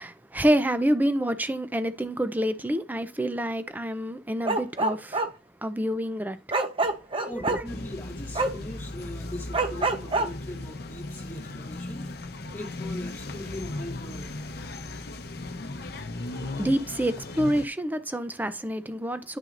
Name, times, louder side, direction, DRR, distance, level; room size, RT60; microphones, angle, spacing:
voice 1, 0.0-5.3 5.6-6.4 7.1-7.6 16.6-19.4, equal, 10° right, 0.5 m, -27 dB
Bark, 4.4-5.3 6.5-7.6 8.4-8.5 9.5-10.3, right 3 dB, 30° right, 0.9 m, -25 dB
voice 2, 7.3-12.2 12.5-14.4, left 1 dB, 10° left, 2.3 m, -40 dB
sound 1, 7.6-17.7, left 2 dB, 60° left, 0.8 m, -37 dB
11.0 x 6.0 x 2.6 m
head